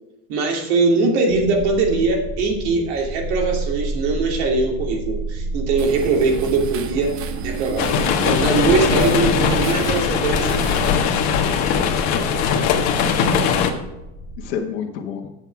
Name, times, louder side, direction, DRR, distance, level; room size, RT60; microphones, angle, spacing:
voice 1, 0.3-7.1 7.4-7.9 8.2-10.6, right 3 dB, 70° right, 1 dB, 2.8 m, -21 dB
sound 1, 1.3-14.5, right 2 dB, 5° left, 0.7 m, -31 dB
sound 2, 5.8-10.9, right 9 dB, 40° right, 0.8 m, -32 dB
sound 3, 7.8-13.7, left 7 dB, 55° left, 1.4 m, -20 dB
voice 2, 14.4-15.3, left 7 dB, 75° left, 2 dB, 1.5 m, -31 dB
8.4 x 7.9 x 4.7 m, 0.95 s
supercardioid pair, 150°, 35 cm